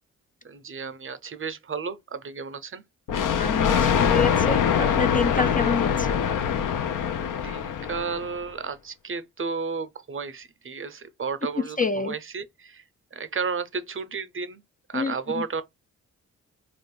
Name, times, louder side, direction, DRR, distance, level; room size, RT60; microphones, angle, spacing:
voice 1, 0.4-2.8 7.3-12.8 13.1-14.6 14.9-15.6, right 5 dB, 35° right, 0.6 m, -33 dB
Thunder, 3.1-8.4, left 8 dB, 65° left, 0.6 m, -23 dB
voice 2, 3.4-6.1 11.8-12.1 14.9-15.1, left 4 dB, 25° left, 0.3 m, -27 dB
2.5 x 2.4 x 3.7 m
supercardioid pair, 45°, 35 cm